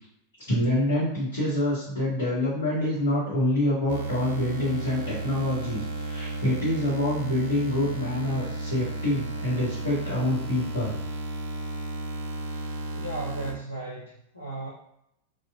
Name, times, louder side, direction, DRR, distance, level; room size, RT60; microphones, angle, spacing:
voice 1, 0.5-11.0 12.5-12.7, left 1 dB, 60° left, -10 dB, 1.2 m, -26 dB
sound 1, 3.9-13.5, right 2 dB, 55° right, 0.5 m, -33 dB
voice 2, 12.9-14.7, right 2 dB, 85° left, -8 dB, 0.7 m, -36 dB
2.9 x 2.4 x 2.4 m, 0.78 s
figure-of-eight pair, 90°, 0 cm